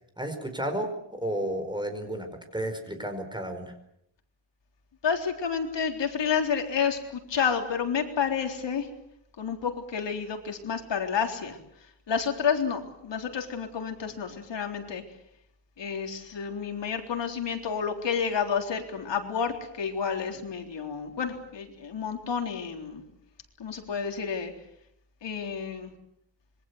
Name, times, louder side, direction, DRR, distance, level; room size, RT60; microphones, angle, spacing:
voice 1, 0.2-2.3 2.5-3.7, right 1 dB, 10° right, 6 dB, 4.7 m, -32 dB
voice 2, 5.0-8.9 9.4-11.6 12.1-15.0 15.8-23.0 23.6-24.5 25.2-25.9, left 6 dB, 70° left, 4 dB, 3.8 m, -30 dB
26.5 x 23.0 x 8.1 m, 0.75 s
wide cardioid pair, 150°, 44 cm